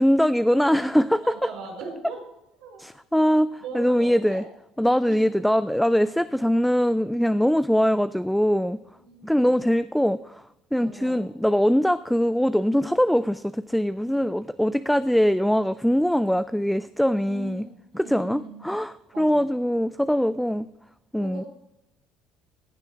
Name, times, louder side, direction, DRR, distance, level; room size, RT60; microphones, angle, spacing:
voice 1, 0.0-1.2 2.8-4.4 4.8-8.8 9.2-10.4 10.7-17.6 17.9-20.7 21.1-21.4, equal, ahead, 14 dB, 0.3 m, -22 dB
voice 2, 1.2-2.2 2.6-2.8 3.6-4.4 5.1-5.3 9.0-9.7 10.8-11.2 17.0-18.7 19.1-19.4 21.2-21.5, right 4 dB, 90° right, -2 dB, 4.3 m, -40 dB
15.0 x 6.9 x 4.5 m, 0.90 s
supercardioid pair, 95°, 0 cm